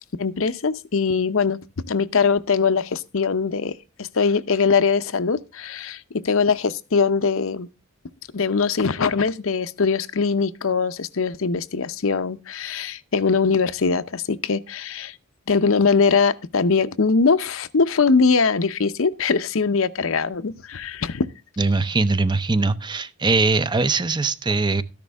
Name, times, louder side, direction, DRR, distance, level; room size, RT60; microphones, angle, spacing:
voice 1, 0.2-1.6 1.8-3.7 4.0-7.7 8.3-15.2 15.5-21.3, left 5 dB, 65° left, 0.7 m, -21 dB
voice 2, 21.6-24.8, right 3 dB, 20° right, 0.6 m, -21 dB
13.5 x 10.5 x 3.5 m
head